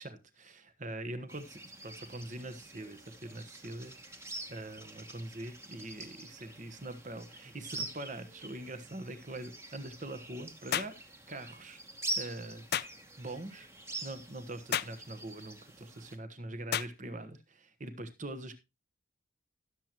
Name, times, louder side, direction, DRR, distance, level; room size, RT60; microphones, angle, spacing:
voice 1, 0.0-4.0 4.5-10.9 11.3-11.8 12.1-12.6 13.2-13.7 14.0-18.6, right 1 dB, 40° right, 1.2 m, -43 dB
sound 1, 1.3-16.2, right 1 dB, 15° right, 1.3 m, -45 dB
sound 2, 10.7-11.0 12.7-12.9 14.7-15.0 16.7-16.9, left 9 dB, 50° left, 0.5 m, -32 dB
16.0 x 7.5 x 3.0 m
head